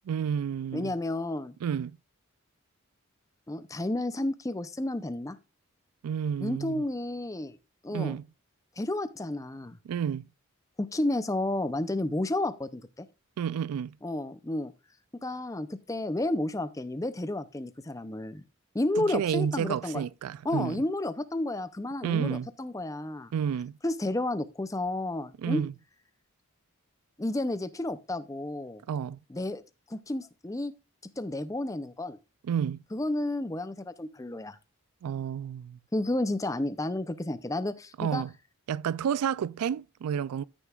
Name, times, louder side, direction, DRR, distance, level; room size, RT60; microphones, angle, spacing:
voice 1, 0.1-0.9 1.6-1.9 6.0-6.8 7.9-8.2 9.9-10.3 13.4-14.0 19.0-20.8 22.0-22.5 23.3-23.8 25.4-25.7 28.9-29.2 32.4-32.8 35.0-35.8 38.0-38.3 38.7-40.4, right 8 dB, 85° right, 0.3 m, -30 dB
voice 2, 0.7-1.6 3.5-5.4 6.4-7.6 7.8-8.2 8.8-9.8 10.8-13.1 14.0-14.7 15.2-18.4 18.7-20.0 20.4-23.3 23.8-25.6 27.2-28.8 29.3-29.6 29.9-30.7 31.2-32.2 32.9-34.6 35.9-38.2, left 1 dB, 15° left, 0.5 m, -31 dB
13.5 x 6.7 x 2.4 m
head